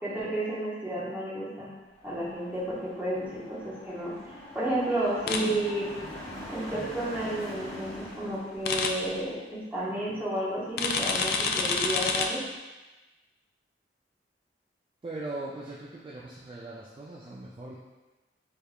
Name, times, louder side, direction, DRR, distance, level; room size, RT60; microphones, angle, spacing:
voice 1, 0.0-1.7 2.0-5.9 6.5-12.4, right 1 dB, 10° right, -9 dB, 0.9 m, -32 dB
sound 1, 1.9-9.3, equal, 15° left, 0.7 m, -43 dB
sound 2, 5.3-5.4 8.6-8.9 10.8-12.3, left 5 dB, 60° left, 0.3 m, -27 dB
voice 2, 15.0-17.7, right 2 dB, 30° right, -6 dB, 0.3 m, -39 dB
3.3 x 3.3 x 2.3 m, 1.1 s
head